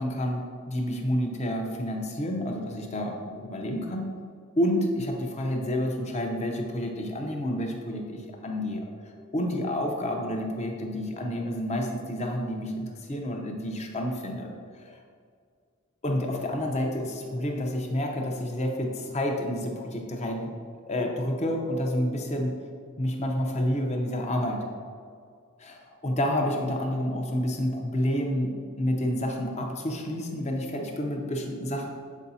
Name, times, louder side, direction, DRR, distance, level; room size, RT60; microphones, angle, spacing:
voice 1, 0.0-4.1 4.6-8.9 9.3-14.5 14.8-15.0 16.0-20.5 20.9-22.5 23.0-24.6 25.6-31.9, equal, 30° left, 1 dB, 0.7 m, -29 dB
7.2 x 4.8 x 2.7 m, 2.1 s
head